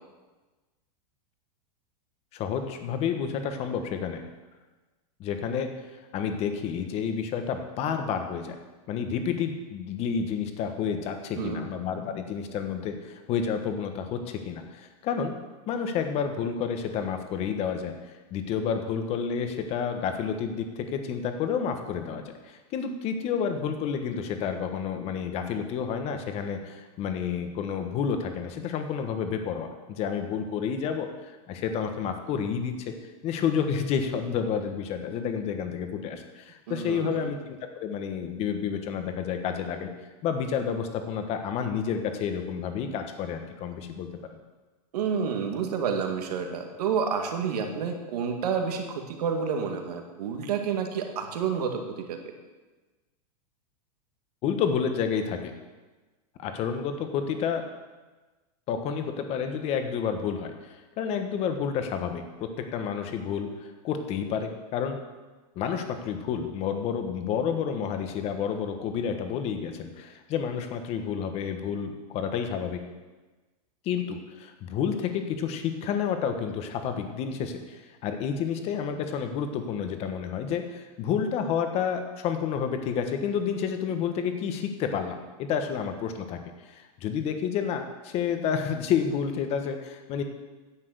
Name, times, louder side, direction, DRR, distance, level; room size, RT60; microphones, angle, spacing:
voice 1, 2.3-4.2 5.2-8.6 8.9-15.3 15.7-17.9 18.3-32.9 33.2-39.9 40.2-44.4 54.4-55.5 56.4-57.6 58.7-65.0 65.5-72.8 73.8-90.2, left 7 dB, 30° left, 6 dB, 1.3 m, -30 dB
voice 2, 11.3-11.7 36.7-37.3 44.9-51.8 52.1-52.2, right 6 dB, 75° right, 4 dB, 2.1 m, -29 dB
10.0 x 7.6 x 7.9 m, 1.2 s
supercardioid pair, 155°, 20 cm